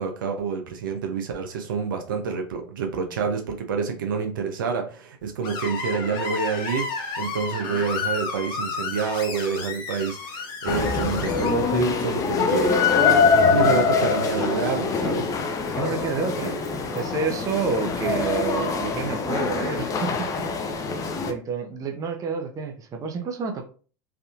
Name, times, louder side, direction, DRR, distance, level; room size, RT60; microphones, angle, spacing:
voice 1, 0.0-12.8 13.4-15.3, right 5 dB, 80° right, 0.7 m, -28 dB
Screech, 5.4-11.5, left 4 dB, 45° left, 1.0 m, -32 dB
sound 1, 10.7-21.3, left 5 dB, 30° left, 0.5 m, -23 dB
voice 2, 15.6-16.6 16.9-21.0 21.3-23.7, right 5 dB, 30° right, 0.7 m, -29 dB
3.5 x 2.7 x 2.4 m
hypercardioid pair, 90°, 11 cm